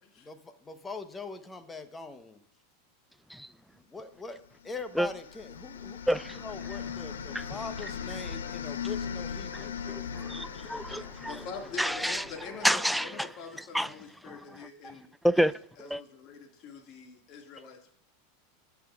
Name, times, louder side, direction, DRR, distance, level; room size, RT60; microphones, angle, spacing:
voice 1, 0.2-2.4 3.9-9.9, left 4 dB, 15° left, 9 dB, 1.0 m, -42 dB
sound 1, 4.6-12.6, left 7 dB, 85° left, 0.6 m, -39 dB
voice 2, 6.1-6.4 7.3-7.4 9.5-11.4 11.8-12.2 12.6-13.3 13.7-13.9 14.2-14.4 15.2-15.5 15.8-16.0, equal, ahead, 17 dB, 0.3 m, -29 dB
voice 3, 11.2-15.5 15.8-18.0, left 5 dB, 50° left, 2 dB, 2.0 m, -44 dB
16.0 x 5.8 x 2.4 m, 0.73 s
hypercardioid pair, 100°, 0 cm